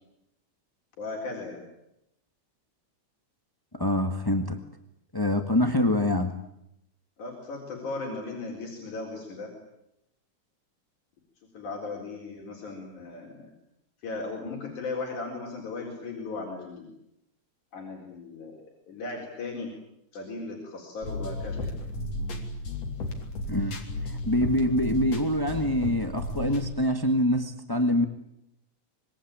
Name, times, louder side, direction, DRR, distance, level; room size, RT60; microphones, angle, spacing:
voice 1, 1.0-1.6 7.2-9.5 11.5-13.5 14.0-16.9 17.7-19.7 20.1-21.7, left 3 dB, 85° left, -1 dB, 5.6 m, -37 dB
voice 2, 3.7-4.6 5.1-6.3 23.5-28.0, left 1 dB, 25° left, 6 dB, 0.5 m, -25 dB
sound 1, 21.0-26.7, left 1 dB, 60° left, 4.1 m, -33 dB
26.0 x 22.5 x 8.8 m, 0.81 s
omnidirectional pair, 3.4 m